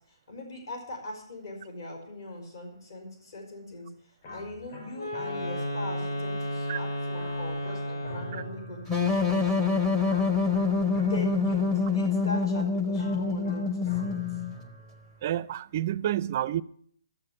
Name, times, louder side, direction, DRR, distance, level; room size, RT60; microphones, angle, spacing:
voice 1, 0.3-3.9 4.3-9.7 11.0-14.2, left 1 dB, 50° left, 4.9 m, -40 dB
sound 1, 4.2-6.3 7.1-9.5 10.0-12.1 12.9-15.3, left 2 dB, 25° left, 5.1 m, -45 dB
Wind instrument woodwind instrument, 4.9-8.6, equal, 70° left, 4.4 m, -33 dB
sound 2, 8.9-14.5, left 4 dB, 5° left, 0.8 m, -26 dB
voice 2, 15.2-16.6, right 12 dB, 30° right, 0.4 m, -29 dB
12.5 x 7.4 x 9.8 m
hypercardioid pair, 170°, 3 cm